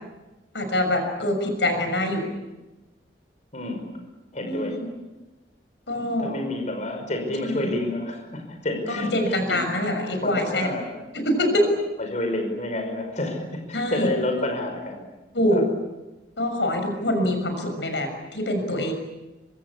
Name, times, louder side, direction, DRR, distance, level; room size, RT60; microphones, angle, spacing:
voice 1, 0.5-2.3 4.5-4.9 5.9-6.3 7.4-7.7 8.9-10.7 11.1-11.6 13.7-14.5 15.3-15.7 16.4-18.9, left 1 dB, 85° left, 6 dB, 6.5 m, -25 dB
voice 2, 3.5-3.8 4.3-4.8 6.0-9.1 9.5-9.6 10.2-10.9 11.4-11.7 12.0-15.1 15.5-15.6, left 1 dB, 45° left, 4 dB, 5.6 m, -29 dB
26.0 x 24.0 x 8.6 m, 1.1 s
head